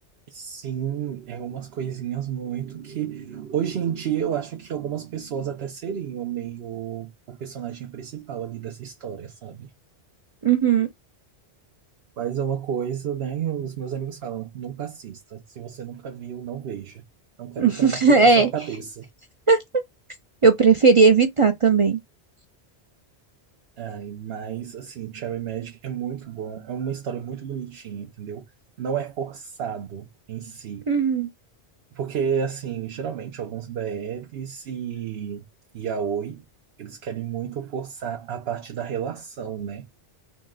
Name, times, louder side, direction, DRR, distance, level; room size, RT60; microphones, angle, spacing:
voice 1, 0.3-9.7 12.2-17.1 17.4-19.1 23.8-28.5 28.8-30.9 31.9-35.5 35.7-36.4 36.8-39.9, right 8 dB, 70° right, 0.9 m, -31 dB
voice 2, 10.4-10.9 17.6-18.5 19.5-19.6 20.4-22.0 30.9-31.3, right 5 dB, 40° right, 0.5 m, -17 dB
3.9 x 2.1 x 3.6 m
omnidirectional pair, 1.1 m